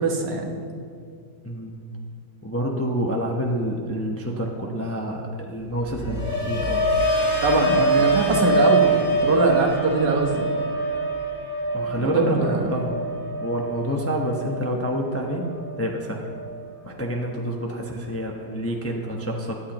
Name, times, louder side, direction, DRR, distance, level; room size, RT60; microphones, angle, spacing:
voice 1, 0.0-0.6 7.4-10.5 12.0-12.7, right 4 dB, 80° right, 1 dB, 1.8 m, -22 dB
voice 2, 1.4-1.8 2.4-6.9 11.7-12.9 13.4-15.5 15.8-16.2 16.8-19.6, equal, 15° left, 0 dB, 0.6 m, -28 dB
sound 1, 5.7-15.8 16.1-16.6, right 1 dB, 20° right, 2.9 m, -24 dB
21.5 x 8.3 x 3.0 m, 2.3 s
omnidirectional pair, 1.9 m